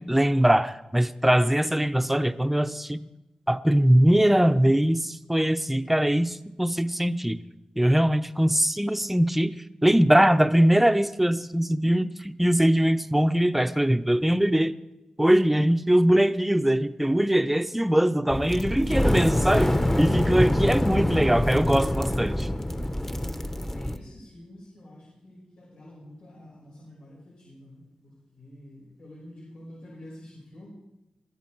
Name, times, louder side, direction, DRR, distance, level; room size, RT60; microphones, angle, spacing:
voice 1, 0.0-3.0 3.5-7.4 7.8-9.5 9.8-14.7 15.2-19.7 20.0-22.5, right 1 dB, 5° right, 10 dB, 0.7 m, -22 dB
sound 1, 18.3-24.0, left 1 dB, 15° left, 1.0 m, -25 dB
voice 2, 18.5-19.5 23.3-30.7, left 1 dB, 85° left, -4 dB, 5.4 m, -47 dB
22.5 x 13.0 x 4.6 m, 1.0 s
wide cardioid pair, 115°, 2 cm